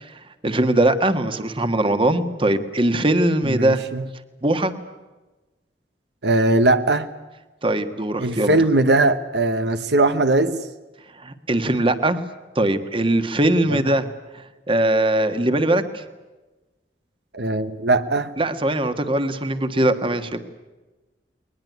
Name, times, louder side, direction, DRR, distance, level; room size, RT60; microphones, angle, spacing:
voice 1, 0.4-3.9 4.4-4.7 7.6-8.6 11.2-12.2 12.5-16.0 18.4-20.4, right 1 dB, 30° right, 9 dB, 1.5 m, -21 dB
voice 2, 3.4-4.1 6.2-7.1 8.2-10.6 13.9-14.0 17.3-18.3, right 2 dB, 70° right, 9 dB, 1.2 m, -19 dB
22.0 x 20.5 x 9.4 m, 1.2 s
head